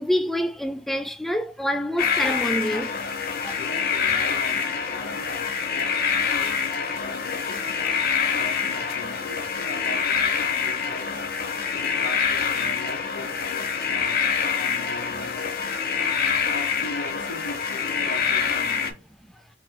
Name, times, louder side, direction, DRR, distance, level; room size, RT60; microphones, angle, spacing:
voice 1, 0.0-2.9 3.4-3.5, equal, ahead, 0.3 m, -26 dB
sound 1, 2.0-18.9, left 6 dB, 55° left, 0.8 m, -26 dB
voice 2, 3.5-15.5 16.1-19.0, left 2 dB, 90° left, 1.9 m, -40 dB
4.3 x 3.6 x 2.2 m
head